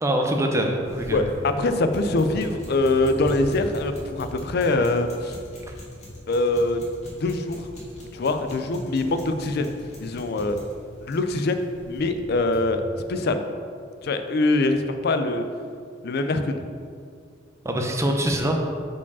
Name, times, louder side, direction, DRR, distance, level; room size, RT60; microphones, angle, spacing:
voice 1, 0.0-1.2 17.6-18.6, right 1 dB, 15° right, 2 dB, 0.6 m, -23 dB
sound 1, 0.8-12.7, left 1 dB, 35° left, 1.6 m, -40 dB
voice 2, 1.1-5.4 6.3-6.8 7.2-7.7 8.1-9.7 10.0-10.6 11.0-13.4 14.0-15.4 16.0-16.6, left 2 dB, 55° left, 8 dB, 0.4 m, -23 dB
4.8 x 4.8 x 5.4 m, 2.3 s
head